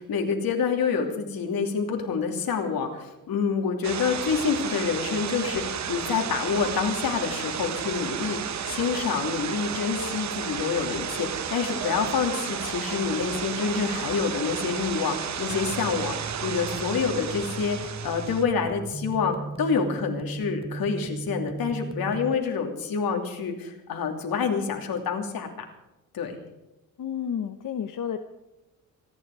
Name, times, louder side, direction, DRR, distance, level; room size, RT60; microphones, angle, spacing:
voice 1, 0.0-25.5 26.1-26.4, left 6 dB, 85° left, 3 dB, 2.9 m, -27 dB
sound 1, 3.8-18.4, right 8 dB, 50° right, 1.0 m, -32 dB
sound 2, 15.5-22.3, right 3 dB, 15° right, 0.9 m, -37 dB
voice 2, 27.0-28.2, left 8 dB, 65° left, 6 dB, 1.1 m, -31 dB
27.0 x 10.0 x 4.8 m, 0.96 s
wide cardioid pair, 140°, 35 cm